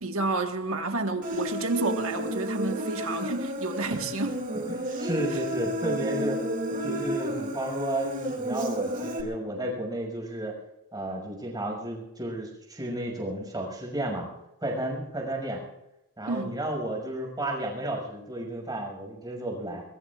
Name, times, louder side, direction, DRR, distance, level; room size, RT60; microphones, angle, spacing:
voice 1, 0.0-4.3 16.3-16.5, right 3 dB, 70° right, 1.6 m, -30 dB
Human voice, 1.2-9.2, equal, 40° right, 2.6 m, -31 dB
voice 2, 4.7-6.4 6.8-10.6 10.9-14.3 14.6-15.6 16.2-19.8, right 1 dB, 20° right, 6.2 m, -32 dB
25.0 x 22.0 x 2.5 m
head